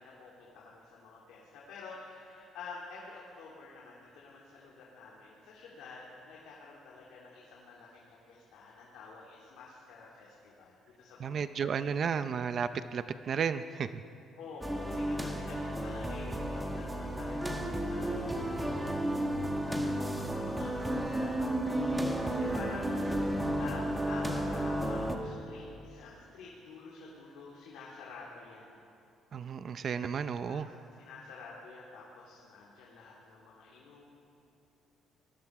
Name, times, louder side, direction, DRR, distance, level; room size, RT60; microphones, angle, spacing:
voice 1, 0.0-11.7 14.4-28.8 30.5-30.6 31.0-34.0, left 4 dB, 85° left, -4 dB, 3.4 m, -49 dB
voice 2, 11.2-14.0 29.3-30.7, right 6 dB, 40° right, 12 dB, 0.5 m, -33 dB
sound 1, 14.6-25.2, equal, 5° right, 1.5 m, -33 dB
sound 2, 16.9-24.7, right 6 dB, 80° right, 1.3 m, -48 dB
27.5 x 20.0 x 4.8 m, 2.7 s
cardioid pair, 165°, 0 cm